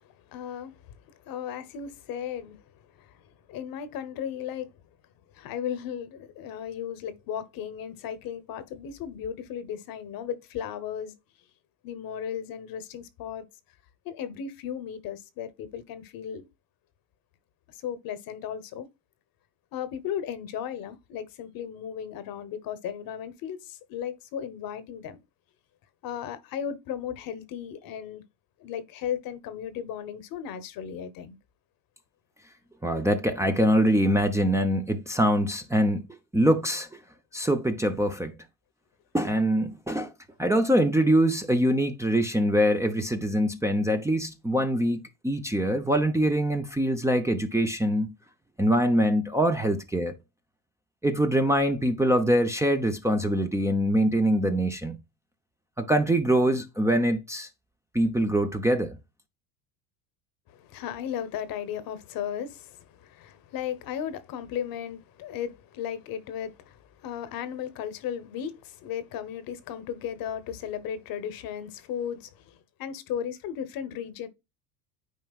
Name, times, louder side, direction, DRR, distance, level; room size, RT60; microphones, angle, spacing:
voice 1, 0.0-2.6 3.0-4.7 5.3-11.1 11.8-13.4 14.0-16.5 17.7-18.9 19.7-25.2 26.0-28.2 28.6-31.4 60.5-74.3, left 9 dB, 55° left, 1.0 m, -36 dB
voice 2, 32.8-36.0 36.3-36.9 37.3-38.3 39.1-40.1 40.4-48.1 48.6-50.1 51.0-55.0 55.8-57.5 57.9-59.0, right 1 dB, 5° right, 0.6 m, -24 dB
9.3 x 4.4 x 2.4 m
supercardioid pair, 110°, 42 cm